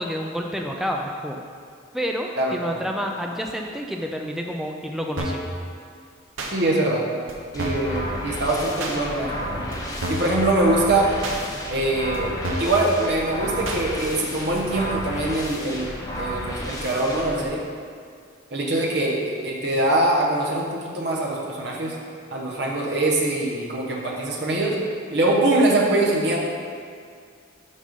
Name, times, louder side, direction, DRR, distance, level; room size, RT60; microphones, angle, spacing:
voice 1, 0.0-1.4 1.9-5.5, equal, ahead, 1 dB, 0.4 m, -29 dB
voice 2, 2.4-2.7 6.5-7.0 7.5-9.7 10.1-11.1 11.7-15.9 16.1-17.6 18.5-21.9 22.3-24.8 25.1-26.4, right 2 dB, 55° right, -3 dB, 1.0 m, -23 dB
sound 1, 5.2-5.5 6.4-6.5 7.3-7.4 7.6-7.9 8.8-9.0 9.7-9.8 10.0-10.4 11.2-11.4 12.1-12.2 12.4-12.8 13.6-13.8 14.6-14.7, right 1 dB, 85° right, 0.9 m, -29 dB
sound 2, 7.5-17.4, equal, 20° left, 0.8 m, -32 dB
6.5 x 5.4 x 5.1 m, 2.2 s
head